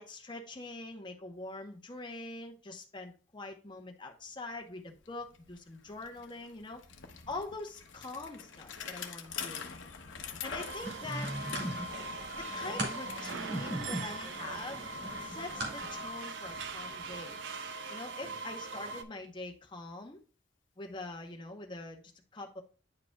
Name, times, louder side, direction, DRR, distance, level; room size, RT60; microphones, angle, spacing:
voice 1, 0.0-6.8 7.3-9.6 10.4-11.3 12.3-14.9 15.2-17.4 17.9-20.2 20.8-22.0 22.3-22.6, left 2 dB, 25° left, 3 dB, 0.9 m, -44 dB
Bicycle, 4.6-4.7 4.9-17.8, left 6 dB, 75° left, 0.8 m, -47 dB
sound 1, 10.6-19.0, right 2 dB, 70° right, 0.6 m, -41 dB
sound 2, 10.8-16.0, right 1 dB, 55° right, 2.3 m, -39 dB
9.7 x 4.8 x 2.3 m, 0.37 s
head